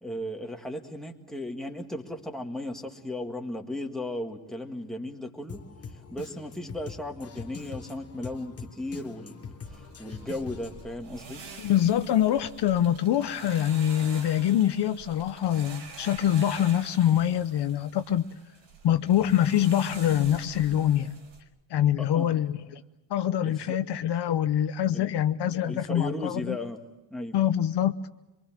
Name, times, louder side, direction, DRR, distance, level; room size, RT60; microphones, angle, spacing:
voice 1, 0.0-9.4 9.6-11.4 22.0-22.4 23.4-23.8 24.9-25.1 25.6-26.8 27.1-27.4, left 1 dB, ahead, 1.8 m, -36 dB
Drum kit, 5.5-11.0, left 6 dB, 30° left, 1.5 m, -43 dB
sound 1, 9.7-21.4, right 4 dB, 85° right, 4.9 m, -46 dB
voice 2, 11.6-18.2 18.8-21.2 21.7-22.8 23.1-26.6 27.3-27.9, left 11 dB, 60° left, 0.8 m, -25 dB
25.0 x 23.5 x 7.4 m
cardioid pair, 145°, 46 cm